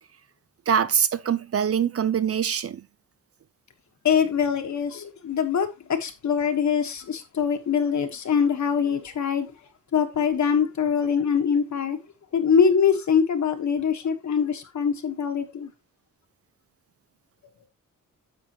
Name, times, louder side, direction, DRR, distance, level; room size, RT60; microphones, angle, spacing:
voice 1, 0.7-2.8, right 8 dB, 45° right, 0.6 m, -23 dB
voice 2, 4.0-9.5 9.9-12.0 12.3-15.7, left 7 dB, 60° left, 1.5 m, -23 dB
9.9 x 7.2 x 3.0 m
wide cardioid pair, 150°, 32 cm